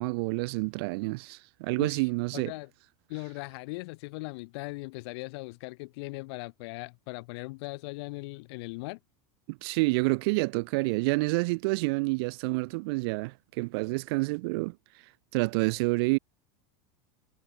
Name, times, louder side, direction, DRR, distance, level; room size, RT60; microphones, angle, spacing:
voice 1, 0.0-2.5 9.5-14.7 15.3-16.2, right 26 dB, 55° right, 0.7 m, -28 dB
voice 2, 1.8-2.7 3.1-9.0, left 25 dB, 55° left, 4.5 m, -39 dB
supercardioid pair, 170°, 16 cm